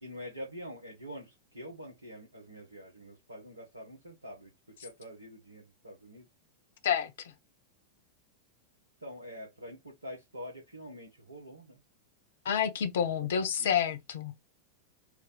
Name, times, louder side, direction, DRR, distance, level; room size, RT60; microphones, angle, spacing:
voice 1, 0.0-4.5 4.8-6.3 9.0-11.8 13.2-13.3 13.6-13.8, equal, 80° right, 1.1 m, -46 dB
voice 2, 12.4-14.3, left 8 dB, 60° left, 0.7 m, -29 dB
4.8 x 2.7 x 3.3 m
figure-of-eight pair, 90°, 0 cm